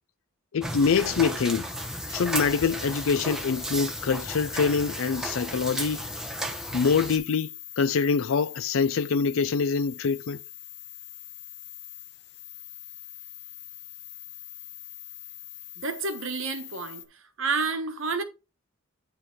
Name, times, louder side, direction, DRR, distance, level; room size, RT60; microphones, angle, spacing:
voice 1, 0.5-1.7 2.1-6.1 6.7-7.5 7.8-10.4, left 5 dB, 70° left, 0.4 m, -25 dB
sound 1, 0.6-7.2, right 1 dB, 5° right, 0.9 m, -34 dB
sound 2, 0.7-17.0, left 13 dB, 55° left, 0.9 m, -43 dB
voice 2, 15.8-18.2, right 4 dB, 65° right, 1.1 m, -30 dB
9.9 x 3.5 x 4.5 m
head